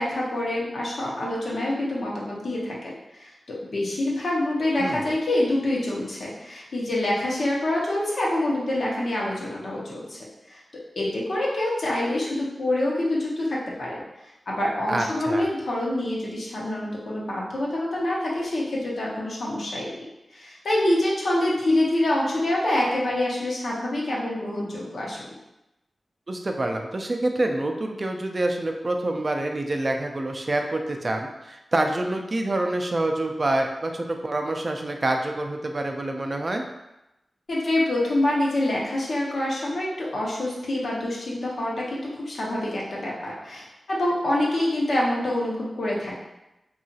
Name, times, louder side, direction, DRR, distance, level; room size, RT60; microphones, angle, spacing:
voice 1, 0.0-10.2 10.5-10.6 11.0-20.0 20.3-25.2 37.5-46.2, left 1 dB, 70° left, -4 dB, 0.8 m, -26 dB
voice 2, 14.9-15.5 26.3-36.6, right 2 dB, 45° right, 3 dB, 0.4 m, -27 dB
2.8 x 2.3 x 2.7 m, 0.93 s
cardioid pair, 50°, 0 cm